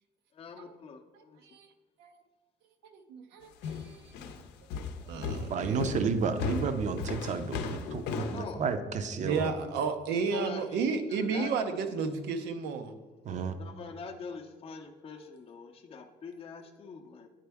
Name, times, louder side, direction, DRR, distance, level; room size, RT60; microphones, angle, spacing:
voice 1, 0.3-1.4 8.2-8.6 10.3-10.6 11.1-11.5 13.6-17.3, left 5 dB, 35° left, 3 dB, 0.5 m, -44 dB
voice 2, 2.8-4.0 5.1-6.0 9.2-12.9, right 5 dB, 85° right, 7 dB, 0.6 m, -32 dB
sound 1, 3.6-8.4, left 5 dB, 90° left, 0.6 m, -36 dB
voice 3, 5.5-9.5 13.2-13.6, right 5 dB, 45° right, 9 dB, 0.6 m, -31 dB
9.0 x 4.3 x 3.4 m, 1.3 s
cardioid pair, 110°, 17 cm